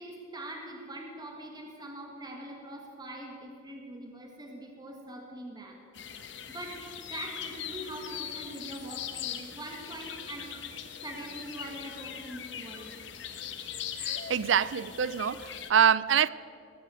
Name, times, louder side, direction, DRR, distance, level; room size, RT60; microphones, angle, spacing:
voice 1, 0.0-5.8 6.1-6.8 7.1-10.5 11.0-13.0, right 1 dB, 20° right, 1.7 m, -43 dB
sound 1, 5.9-15.7, left 9 dB, 65° left, 1.1 m, -40 dB
voice 2, 14.0-16.3, right 8 dB, 70° right, 0.4 m, -25 dB
19.5 x 8.3 x 7.7 m
head